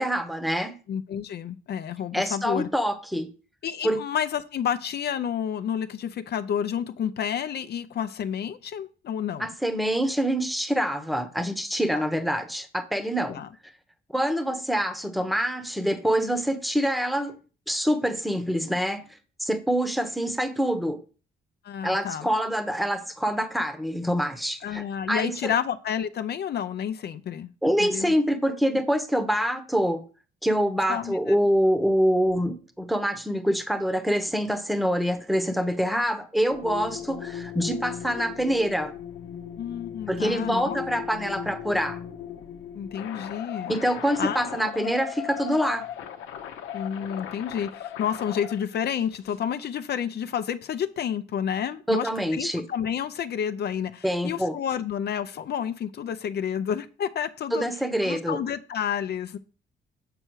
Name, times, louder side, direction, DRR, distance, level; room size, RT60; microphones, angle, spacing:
voice 1, 0.0-0.8 2.1-3.3 3.8-4.0 9.4-13.4 14.1-17.4 17.7-19.0 19.4-21.0 21.8-25.5 27.6-30.0 30.4-38.9 40.1-42.0 43.7-45.9 51.9-52.7 54.0-54.6 57.5-58.4, equal, ahead, 0.9 m, -25 dB
voice 2, 0.9-2.7 3.6-9.5 11.9-12.0 13.3-13.5 21.6-22.3 24.6-27.5 27.8-28.1 30.9-31.4 39.6-40.8 42.7-43.7 44.2-44.4 46.7-57.6 58.0-59.4, left 8 dB, 55° left, 0.5 m, -30 dB
sound 1, 36.5-49.4, left 9 dB, 90° left, 0.8 m, -38 dB
7.8 x 4.4 x 4.7 m
cardioid pair, 90°, 20 cm